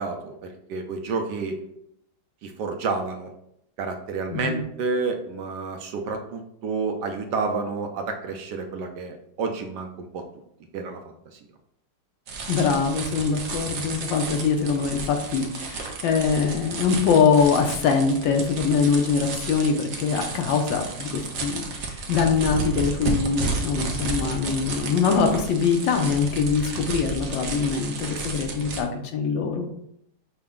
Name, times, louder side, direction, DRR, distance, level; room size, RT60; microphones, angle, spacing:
voice 1, 0.0-1.6 2.4-3.3 3.8-10.2 10.7-11.0 11.3-11.4, right 4 dB, 75° right, 4 dB, 1.1 m, -30 dB
voice 2, 4.3-4.6 12.5-29.7, left 5 dB, 80° left, 4 dB, 1.4 m, -23 dB
sound 1, 12.3-28.8, right 4 dB, 90° right, 0.6 m, -32 dB
5.8 x 2.1 x 3.6 m, 0.74 s
omnidirectional pair, 2.0 m